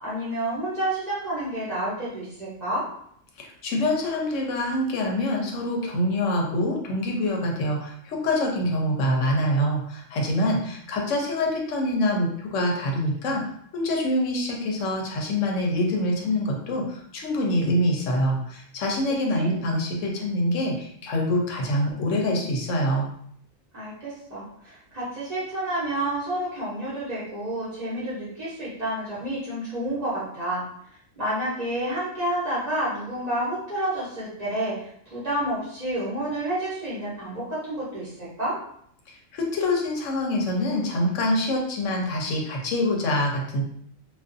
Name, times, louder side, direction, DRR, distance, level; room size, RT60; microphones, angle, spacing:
voice 1, 0.0-2.8 19.3-19.6 23.7-30.6 31.2-38.6, right 1 dB, 35° right, -9 dB, 0.9 m, -29 dB
voice 2, 3.4-13.4 13.7-23.1 39.1-43.6, left 1 dB, 70° left, 0 dB, 0.9 m, -25 dB
2.4 x 2.3 x 2.4 m, 0.67 s
omnidirectional pair, 1.4 m